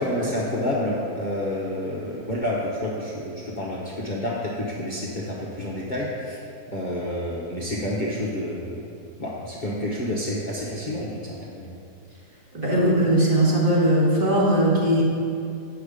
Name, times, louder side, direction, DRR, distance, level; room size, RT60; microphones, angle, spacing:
voice 1, 0.0-6.4 6.7-8.8 9.2-11.7, left 1 dB, 35° left, -6 dB, 0.9 m, -29 dB
voice 2, 12.5-15.0, right 1 dB, 35° right, -6 dB, 1.8 m, -19 dB
8.2 x 5.8 x 5.0 m, 2.6 s
omnidirectional pair, 1.6 m